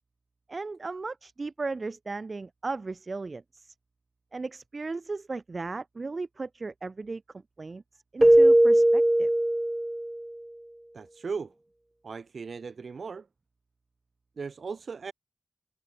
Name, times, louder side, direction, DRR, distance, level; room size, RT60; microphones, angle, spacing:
voice 1, 0.5-3.7 4.3-7.2 7.6-7.8 8.1-9.3, right 3 dB, 50° right, 1.4 m, -36 dB
Keyboard (musical), 8.2-10.2, right 1 dB, 15° right, 0.6 m, -19 dB
voice 2, 10.9-11.5 12.0-13.3 14.4-15.1, right 5 dB, 70° right, 3.5 m, -37 dB
cardioid pair, 55°, 0 cm